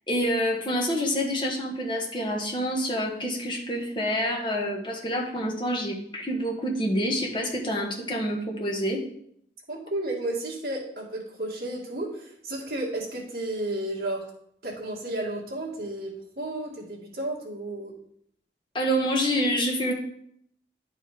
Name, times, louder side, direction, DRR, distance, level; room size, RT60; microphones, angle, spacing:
voice 1, 0.1-9.0 18.7-19.9, equal, 25° left, 0 dB, 1.2 m, -27 dB
voice 2, 9.7-14.2 14.6-17.9, right 1 dB, 60° right, -3 dB, 2.0 m, -32 dB
10.5 x 4.8 x 3.6 m, 0.71 s
head